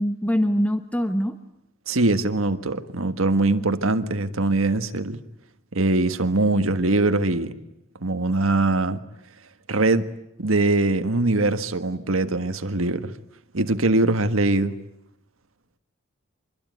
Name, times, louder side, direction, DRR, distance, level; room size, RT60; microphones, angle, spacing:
voice 1, 0.0-1.3, equal, 5° left, 8 dB, 1.2 m, -23 dB
voice 2, 1.9-5.2 5.7-7.5 8.0-9.0 9.7-10.1 10.4-13.1 13.5-14.8, right 2 dB, 85° right, 9 dB, 1.6 m, -22 dB
26.0 x 22.0 x 9.4 m, 0.82 s
head